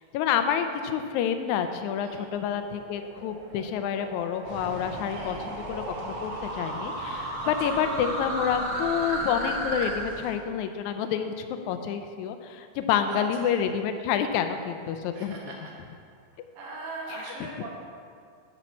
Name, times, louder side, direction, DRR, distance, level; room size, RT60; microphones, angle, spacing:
voice 1, 0.1-15.5 17.1-17.2, left 8 dB, 80° left, 8 dB, 1.9 m, -28 dB
sound 1, 1.9-9.9, right 1 dB, 35° right, 1.5 m, -35 dB
sound 2, 4.4-10.4, right 1 dB, 55° right, 1.6 m, -42 dB
voice 2, 5.1-5.5 7.4-7.8 13.1-13.6 15.1-15.7 16.6-17.7, right 2 dB, 75° right, -2 dB, 3.0 m, -39 dB
12.0 x 6.9 x 4.2 m, 2.2 s
omnidirectional pair, 3.7 m